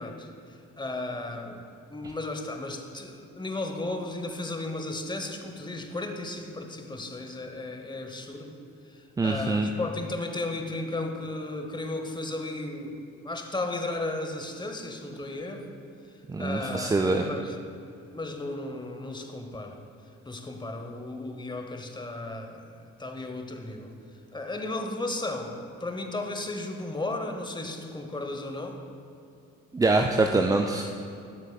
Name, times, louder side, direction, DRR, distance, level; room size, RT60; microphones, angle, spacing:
voice 1, 0.0-1.6 1.9-8.6 8.9-15.7 16.4-17.6 18.1-19.8 20.2-23.9 24.3-28.8, left 2 dB, 10° left, 4 dB, 1.0 m, -35 dB
voice 2, 9.2-9.7 16.3-17.3 29.7-30.9, right 3 dB, 10° right, 4 dB, 0.3 m, -24 dB
12.0 x 8.0 x 2.3 m, 2.6 s
figure-of-eight pair, 40°, 38 cm